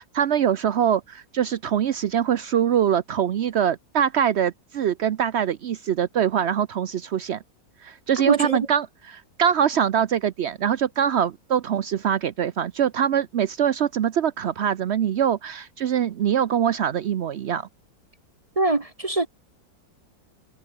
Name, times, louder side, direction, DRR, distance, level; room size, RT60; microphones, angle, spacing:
voice 1, 0.0-7.4 7.8-17.7, right 9 dB, 75° right, 0.6 m, -23 dB
voice 2, 8.3-8.6 18.6-19.3, right 2 dB, 25° right, 0.8 m, -22 dB
omnidirectional pair, 2.0 m